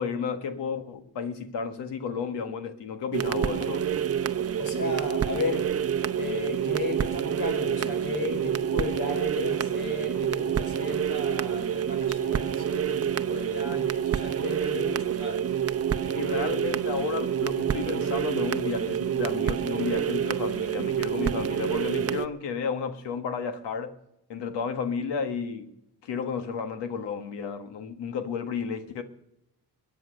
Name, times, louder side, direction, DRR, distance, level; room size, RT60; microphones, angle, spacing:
voice 1, 0.0-3.9 16.1-23.9 24.3-25.7 26.0-29.0, left 6 dB, 85° left, 1.7 m, -32 dB
sound 1, 3.1-22.3, right 9 dB, 35° right, 0.7 m, -28 dB
voice 2, 4.6-5.8 6.2-15.5 16.0-16.5, left 3 dB, 65° left, 5.4 m, -35 dB
22.0 x 9.4 x 6.5 m
cardioid pair, 100°, 41 cm